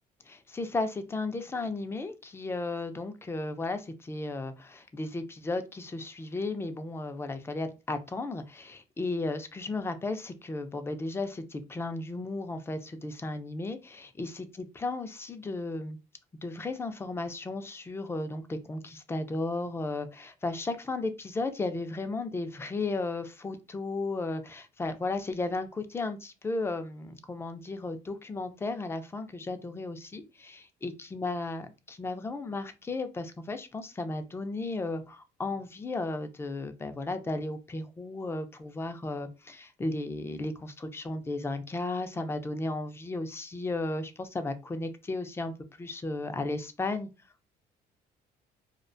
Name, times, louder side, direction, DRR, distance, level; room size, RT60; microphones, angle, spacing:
voice 1, 0.3-16.0 16.4-45.5 45.8-47.1, left 2 dB, 15° left, 8 dB, 0.3 m, -34 dB
2.3 x 2.1 x 2.5 m, 0.28 s
cardioid pair, 110°, 17 cm